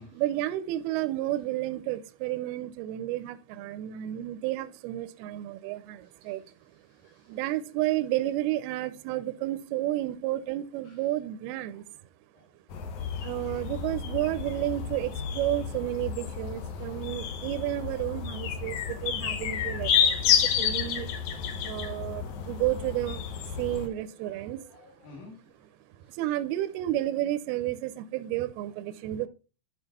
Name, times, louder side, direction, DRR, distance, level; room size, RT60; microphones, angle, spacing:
voice 1, 0.2-6.4 7.3-11.9 13.2-21.1 21.6-23.2 23.6-24.6 26.1-29.3, right 14 dB, 80° right, 2.5 m, -31 dB
voice 2, 6.0-7.6 10.8-11.1 11.7-11.8 12.3-12.5 23.7-26.2 26.6-26.7 29.1-29.2, left 3 dB, 55° left, 3.1 m, -54 dB
sound 1, 12.7-23.9, left 7 dB, 75° left, 1.8 m, -30 dB
11.0 x 5.2 x 4.1 m
omnidirectional pair, 4.6 m